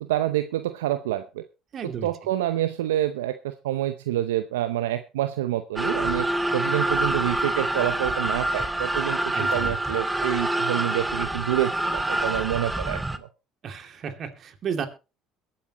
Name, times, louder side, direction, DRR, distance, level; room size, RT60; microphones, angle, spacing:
voice 1, 0.0-1.4 2.0-6.3 6.5-13.3, right 13 dB, 85° right, 10 dB, 0.7 m, -27 dB
voice 2, 1.7-2.1 9.3-10.0 13.6-14.9, right 7 dB, 50° right, 7 dB, 2.6 m, -33 dB
sound 1, 5.8-13.2, right 1 dB, 10° right, 1.2 m, -26 dB
22.0 x 8.6 x 3.0 m, 0.30 s
hypercardioid pair, 65°, 0 cm